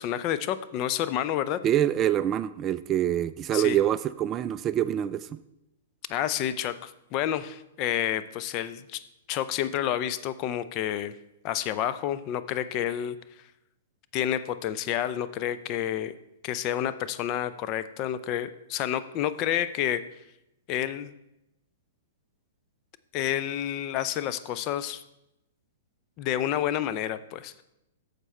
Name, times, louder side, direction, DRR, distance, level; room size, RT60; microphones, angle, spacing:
voice 1, 0.0-1.6 3.5-3.8 6.1-9.0 9.3-11.1 11.4-13.2 14.1-16.1 16.4-20.1 20.7-21.1 23.1-25.0 26.2-27.6, left 11 dB, 35° left, 13 dB, 0.5 m, -29 dB
voice 2, 1.6-5.4, right 11 dB, 25° right, 14 dB, 0.3 m, -25 dB
9.0 x 6.7 x 4.3 m, 0.88 s
hypercardioid pair, 125°, 0 cm